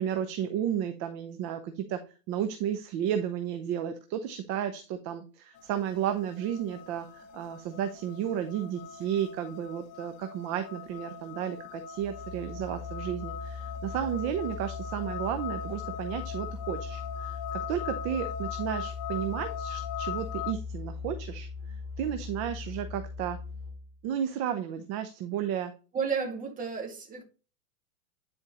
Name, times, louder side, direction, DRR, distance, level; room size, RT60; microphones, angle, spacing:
voice 1, 0.0-2.0 2.3-21.5 22.0-23.4 24.0-25.7, right 9 dB, 35° right, 8 dB, 0.7 m, -33 dB
sound 1, 5.5-20.5, left 8 dB, 55° left, 0.9 m, -40 dB
Musical instrument, 12.0-24.0, left 5 dB, 20° left, 2.8 m, -40 dB
voice 2, 25.9-27.2, right 6 dB, 20° right, 2 dB, 1.8 m, -32 dB
9.9 x 4.4 x 3.1 m, 0.33 s
supercardioid pair, 150°, 44 cm